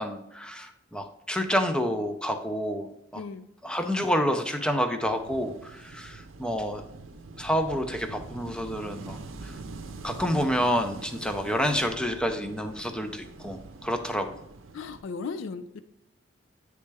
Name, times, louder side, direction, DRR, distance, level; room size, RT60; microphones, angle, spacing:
voice 1, 0.0-3.2 3.6-6.8 7.4-9.2 9.4-9.5 10.0-14.4, equal, 5° left, 6 dB, 0.5 m, -28 dB
voice 2, 3.2-3.5 14.7-15.8, left 4 dB, 70° left, 12 dB, 0.4 m, -36 dB
Wind / Waves surf, 5.0-15.0, right 3 dB, 85° right, 0.6 m, -44 dB
9.3 x 3.3 x 3.3 m, 0.83 s
head